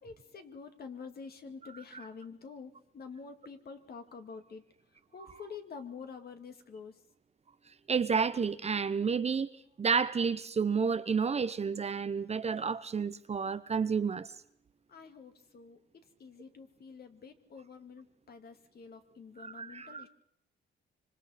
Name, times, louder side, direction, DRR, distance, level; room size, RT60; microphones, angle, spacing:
voice 1, 0.0-4.6 5.1-7.0 14.9-20.1, left 5 dB, 50° left, 2.1 m, -48 dB
voice 2, 7.9-9.5 9.8-14.3 19.4-20.0, right 5 dB, 30° right, 0.8 m, -30 dB
25.5 x 25.0 x 4.2 m
cardioid pair, 90°, 20 cm